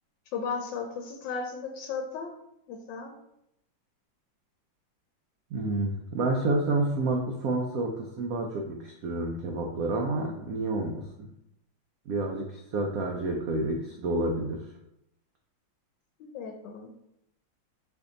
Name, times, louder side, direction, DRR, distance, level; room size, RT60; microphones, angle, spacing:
voice 1, 0.3-2.3 2.7-3.1 16.2-16.9, left 5 dB, 75° left, 3 dB, 1.2 m, -35 dB
voice 2, 5.5-11.3 12.1-14.7, right 2 dB, 90° right, 1 dB, 0.7 m, -29 dB
4.5 x 2.7 x 3.8 m, 0.81 s
omnidirectional pair, 2.1 m